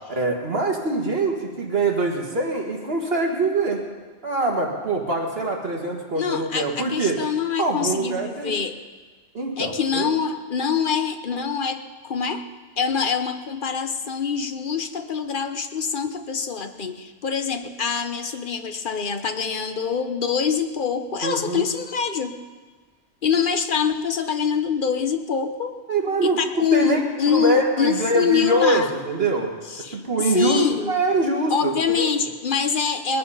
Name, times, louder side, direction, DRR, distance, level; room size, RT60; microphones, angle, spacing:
voice 1, 0.1-3.9 4.2-7.2 7.6-8.5 9.3-10.1 21.2-21.6 25.9-29.5 29.9-30.6 30.9-32.1, right 2 dB, 55° right, 1 dB, 1.8 m, -24 dB
voice 2, 6.2-8.8 9.6-12.4 12.8-22.3 23.2-25.7 26.2-28.9 29.7-31.0 31.5-33.2, left 6 dB, 45° left, 7 dB, 1.0 m, -25 dB
20.0 x 10.5 x 5.5 m, 1.4 s
omnidirectional pair, 1.3 m